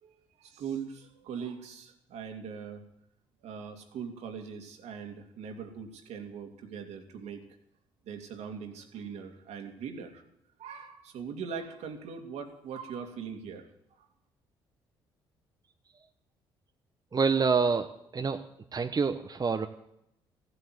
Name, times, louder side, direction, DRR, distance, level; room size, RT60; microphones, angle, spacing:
voice 1, 0.0-2.8 3.4-7.4 8.1-10.2 10.6-13.7 14.0-14.1, right 6 dB, 65° right, 4 dB, 2.4 m, -41 dB
voice 2, 17.1-17.9 18.1-18.4 18.7-19.7, right 5 dB, 35° right, 6 dB, 1.1 m, -26 dB
15.5 x 8.1 x 9.5 m, 0.78 s
hypercardioid pair, 50°, 12 cm